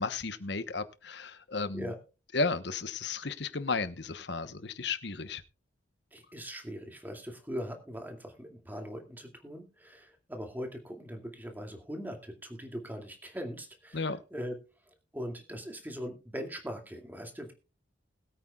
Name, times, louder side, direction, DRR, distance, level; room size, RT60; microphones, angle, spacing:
voice 1, 0.0-1.9 2.3-5.4 13.9-14.2, left 4 dB, 60° left, 13 dB, 1.0 m, -33 dB
voice 2, 6.1-14.6 15.1-17.5, equal, 10° right, 4 dB, 2.3 m, -41 dB
21.5 x 8.7 x 2.3 m, 0.32 s
head